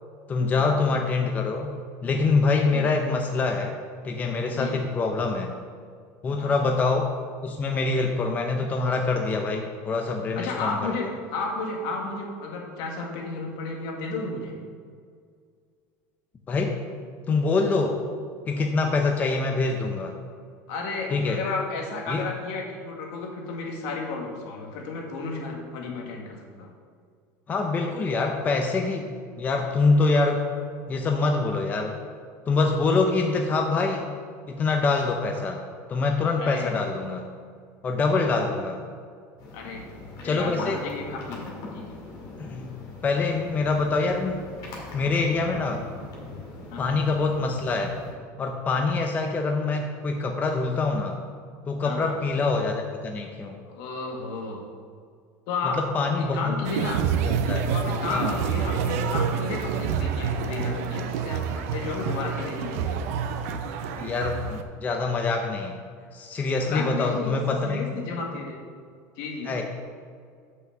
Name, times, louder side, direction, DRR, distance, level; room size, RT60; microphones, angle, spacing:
voice 1, 0.3-1.7 2.0-3.7 4.0-5.5 6.2-7.2 7.4-11.1 16.5-16.8 17.3-18.0 18.5-20.2 21.1-21.4 22.1-22.3 27.5-30.5 30.9-32.0 32.5-34.1 34.5-35.6 35.9-37.2 37.8-38.8 40.2-40.8 42.4-42.8 43.0-44.5 44.9-45.8 46.8-48.0 48.4-51.2 51.7-53.6 55.6-56.6 57.5-57.7 58.1-58.4 63.9-65.7 66.1-67.8 69.5-69.6, left 3 dB, 20° left, 3 dB, 0.6 m, -25 dB
voice 2, 10.3-14.5 20.7-26.7 36.4-36.8 39.5-39.9 40.2-42.0 46.7-47.0 51.8-52.2 53.7-54.6 55.5-55.8 56.2-57.0 57.7-63.0 66.6-68.6 69.2-69.5, left 3 dB, 65° left, 0 dB, 1.8 m, -33 dB
sound 1, 39.4-48.1, left 3 dB, 50° left, 2.2 m, -41 dB
sound 2, 56.6-64.6, right 6 dB, 85° right, 0.7 m, -28 dB
6.2 x 5.8 x 7.0 m, 2.1 s
cardioid pair, 150°, 8 cm